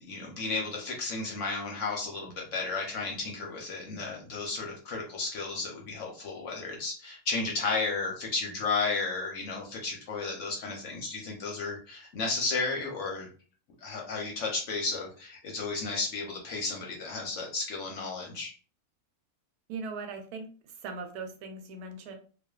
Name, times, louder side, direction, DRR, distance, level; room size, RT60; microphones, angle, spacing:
voice 1, 0.0-13.3 13.8-18.5, left 3 dB, 65° left, 0 dB, 0.8 m, -33 dB
voice 2, 19.7-22.2, right 4 dB, 80° right, 5 dB, 1.1 m, -39 dB
2.5 x 2.3 x 2.3 m, 0.39 s
omnidirectional pair, 1.6 m